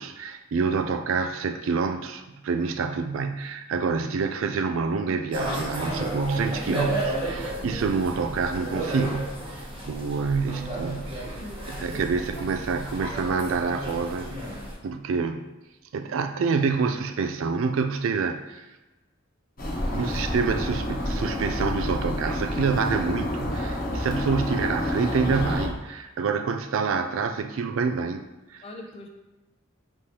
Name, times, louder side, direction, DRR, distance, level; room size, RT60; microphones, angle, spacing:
voice 1, 0.0-9.5 9.9-11.4 11.7-14.6 14.8-15.4 15.9-18.7 19.9-28.2 28.5-28.6, right 5 dB, 70° right, 7 dB, 0.3 m, -27 dB
sound 1, 5.3-14.7, right 1 dB, 25° right, 1.0 m, -33 dB
voice 2, 11.4-12.4 24.0-24.2 28.6-29.1, left 1 dB, 30° left, 3 dB, 0.4 m, -41 dB
sound 2, 19.6-25.7, left 1 dB, 45° left, 1.0 m, -29 dB
5.2 x 3.3 x 2.8 m, 1.1 s
head